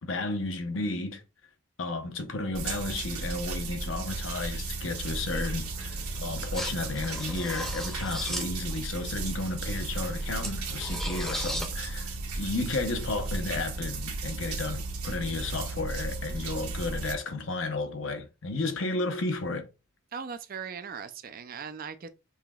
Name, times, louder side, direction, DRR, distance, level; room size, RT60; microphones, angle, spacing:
voice 1, 0.0-1.2 1.8-19.7, left 3 dB, 60° left, 0.7 m, -33 dB
sound 1, 2.5-17.1, right 3 dB, 85° right, 1.4 m, -35 dB
sound 2, 5.0-11.7, equal, 5° left, 0.7 m, -39 dB
voice 2, 20.1-22.1, right 6 dB, 40° right, 0.4 m, -39 dB
5.6 x 2.9 x 2.3 m
head